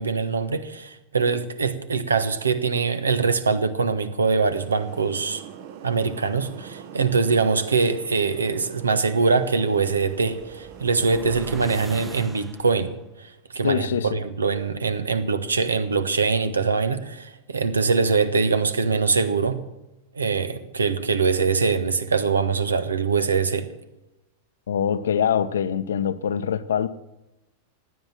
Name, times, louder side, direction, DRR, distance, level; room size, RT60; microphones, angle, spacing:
voice 1, 0.0-5.4 5.8-12.9 13.2-19.6 20.1-23.7, right 4 dB, 75° right, 1.3 m, -23 dB
sound 1, 4.5-12.3, right 9 dB, 50° right, 1.3 m, -42 dB
sound 2, 10.4-13.0, right 2 dB, 10° right, 1.0 m, -42 dB
voice 2, 13.6-14.2 24.7-26.9, left 8 dB, 65° left, 0.8 m, -24 dB
16.0 x 9.9 x 7.5 m
figure-of-eight pair, 90°, 0 cm